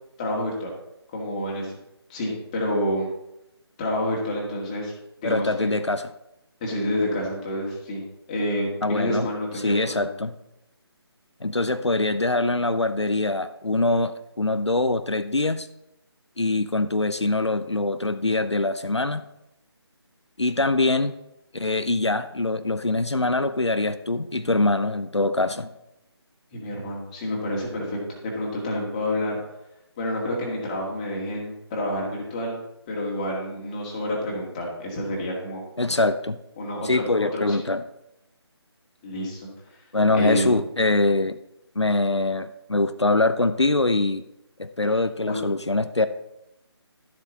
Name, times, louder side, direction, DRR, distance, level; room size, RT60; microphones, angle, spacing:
voice 1, 0.2-0.7 1.1-1.8 2.1-3.1 3.8-4.9 5.2-5.7 6.6-8.0 8.3-10.1 26.5-29.4 30.0-32.6 32.9-35.7 36.6-37.6 39.0-39.5 40.2-40.5 45.3-45.5, left 1 dB, 15° left, -2 dB, 2.1 m, -28 dB
voice 2, 5.2-6.0 8.8-9.3 9.6-10.3 11.4-15.7 16.4-19.2 20.4-21.1 21.5-25.7 35.8-36.4 36.8-37.8 39.9-41.4 41.8-44.2 44.6-46.1, left 2 dB, 85° left, 10 dB, 0.7 m, -23 dB
12.5 x 7.4 x 4.0 m, 0.86 s
figure-of-eight pair, 155°, 14 cm